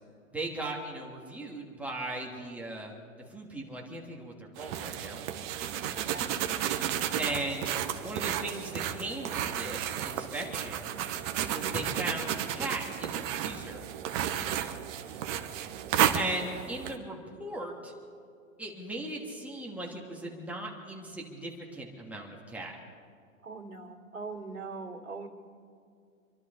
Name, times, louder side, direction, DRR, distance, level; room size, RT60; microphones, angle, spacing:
voice 1, 0.3-2.9 3.3-5.2 7.2-7.7 8.0-10.9 11.5-13.8 16.1-17.9 18.6-22.7, right 2 dB, 5° right, -2 dB, 2.9 m, -38 dB
sound 1, 4.6-17.0, right 10 dB, 40° right, 1.2 m, -32 dB
voice 2, 6.0-6.3 23.4-25.3, right 4 dB, 85° right, 0 dB, 2.5 m, -41 dB
27.5 x 12.0 x 4.2 m, 2.3 s
hypercardioid pair, 125°, 41 cm